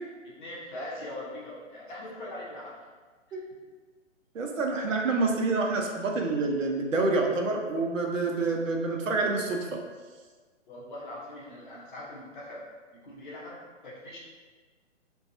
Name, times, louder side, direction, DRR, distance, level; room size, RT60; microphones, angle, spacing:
voice 1, 0.2-2.8 3.3-3.5 10.7-12.6 12.9-14.2, left 1 dB, 40° left, -5 dB, 0.7 m, -41 dB
voice 2, 4.3-9.8, right 3 dB, 90° right, 2 dB, 0.6 m, -27 dB
2.4 x 2.2 x 2.6 m, 1.4 s
hypercardioid pair, 145°, 38 cm